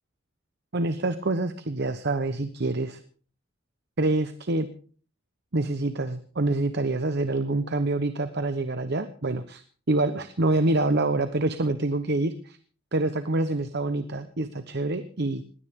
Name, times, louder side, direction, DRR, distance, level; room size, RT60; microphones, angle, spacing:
voice 1, 0.7-3.0 4.0-4.7 5.5-9.6 9.9-12.6 12.9-15.6, right 2 dB, 55° right, 10 dB, 1.0 m, -26 dB
21.0 x 16.5 x 3.7 m, 0.43 s
head